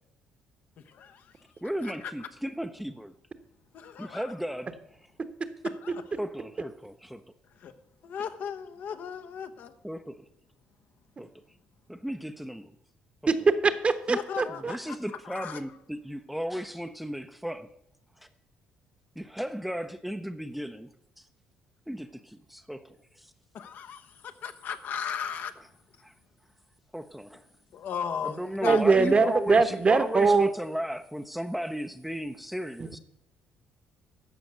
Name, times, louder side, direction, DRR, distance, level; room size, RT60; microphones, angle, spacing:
voice 1, 0.9-1.2 1.8-2.1 3.7-4.3 5.6-6.1 7.6-7.7 8.0-9.7 14.1-15.0 15.2-15.6 23.5-25.5 27.7-29.2, left 7 dB, 65° left, 1.0 m, -36 dB
voice 2, 1.6-3.1 4.0-4.8 6.2-7.2 9.8-10.2 11.2-11.3 11.9-12.7 13.2-13.3 14.1-14.2 14.5-17.7 18.2-18.3 19.2-20.9 21.2-21.3 21.9-23.3 26.0-26.1 26.9-27.4 28.2-33.0, equal, 5° right, 0.6 m, -35 dB
voice 3, 13.6-14.7 28.6-30.5, right 4 dB, 35° right, 1.1 m, -22 dB
13.5 x 5.1 x 8.0 m
supercardioid pair, 75°, 4 cm